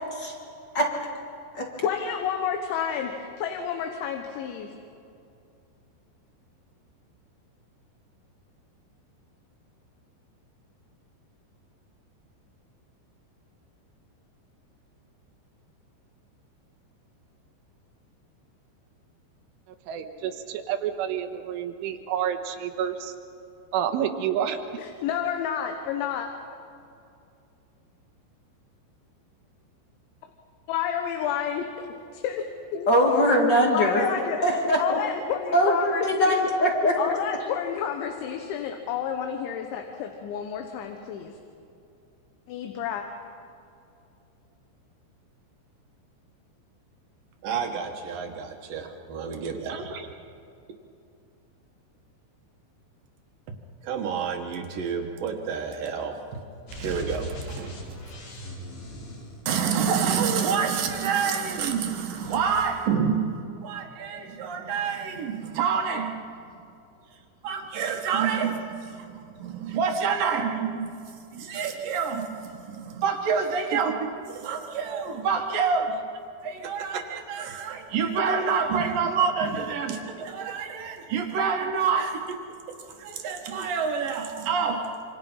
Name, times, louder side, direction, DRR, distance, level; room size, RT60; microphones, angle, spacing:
voice 1, 1.8-4.7 24.8-26.3 30.7-31.7 32.1-33.3 33.7-34.5 34.8-36.4 37.0-41.4 42.5-43.0, left 8 dB, 75° left, 4 dB, 3.5 m, -30 dB
voice 2, 19.9-23.1 23.7-24.6, right 9 dB, 85° right, 7 dB, 3.7 m, -29 dB
voice 3, 32.9-34.0 34.4-35.0 35.5-36.9, equal, 40° left, 1 dB, 1.5 m, -21 dB
voice 4, 47.4-50.1 53.8-56.4 56.7-57.7 59.5-63.2 63.6-66.3 67.4-70.9 71.3-76.0 76.4-82.4 83.0-84.9, right 6 dB, 60° right, 4 dB, 2.5 m, -28 dB
sound 1, 56.7-60.0 60.7-61.8 62.0-62.7, equal, 60° left, 6.4 m, -40 dB
27.5 x 26.0 x 5.6 m, 2.6 s
omnidirectional pair, 5.5 m